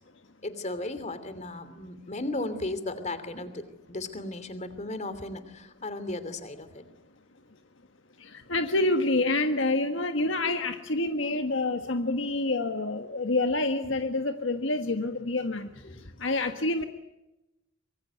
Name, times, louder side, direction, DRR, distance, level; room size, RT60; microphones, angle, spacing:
voice 1, 0.4-6.8 15.8-16.1, left 2 dB, 35° left, 12 dB, 2.9 m, -35 dB
voice 2, 8.2-15.7 16.2-16.8, left 2 dB, 65° left, 7 dB, 1.5 m, -27 dB
25.0 x 23.5 x 9.4 m, 0.96 s
head